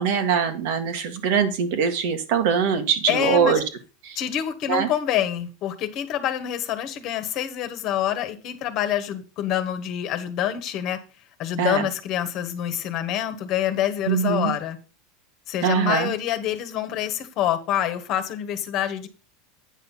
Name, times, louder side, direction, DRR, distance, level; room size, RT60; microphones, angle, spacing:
voice 1, 0.0-3.6 4.0-4.2 4.7-4.9 11.6-11.8 14.1-14.5 15.6-16.1, right 7 dB, 65° right, 7 dB, 1.7 m, -22 dB
voice 2, 3.1-3.6 4.1-11.0 11.4-14.8 15.5-19.1, left 11 dB, 40° left, 10 dB, 1.4 m, -26 dB
9.1 x 5.7 x 5.6 m, 0.33 s
supercardioid pair, 150°, 0 cm